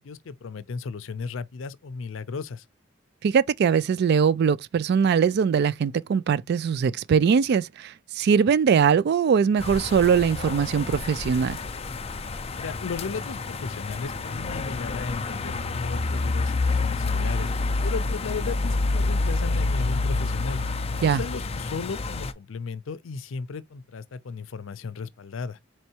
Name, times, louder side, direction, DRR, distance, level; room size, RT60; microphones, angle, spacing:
voice 1, 0.0-2.6 12.6-17.5 17.8-20.6 21.0-25.6, left 5 dB, 80° left, 0.5 m, -35 dB
voice 2, 3.2-11.6 21.0-21.2, right 6 dB, 55° right, 0.3 m, -21 dB
sound 1, 9.6-22.3, left 3 dB, 30° left, 0.5 m, -28 dB
4.4 x 3.0 x 2.8 m
head